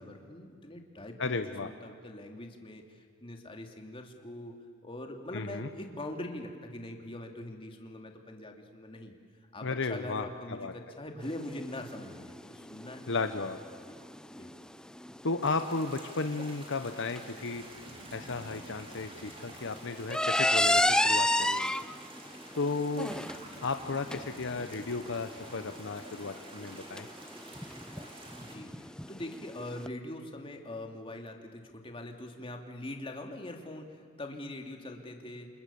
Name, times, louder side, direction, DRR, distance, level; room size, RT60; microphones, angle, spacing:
voice 1, 0.0-4.5 4.8-9.1 9.5-13.1 13.9-14.0 14.4-14.7 28.3-35.5, left 1 dB, 25° left, 3 dB, 2.6 m, -43 dB
voice 2, 1.2-1.7 5.3-5.7 9.6-10.7 13.1-13.6 15.2-17.6 18.1-21.8 22.5-23.1 23.6-27.1, left 3 dB, 60° left, 8 dB, 1.0 m, -34 dB
sound 1, 11.2-29.9, left 1 dB, 5° left, 0.6 m, -33 dB
sound 2, 15.4-28.6, right 2 dB, 25° right, 3.9 m, -50 dB
Breathing, 17.5-21.2 23.0-26.1, equal, 70° right, 7.7 m, -55 dB
28.5 x 27.5 x 7.1 m, 2.3 s
head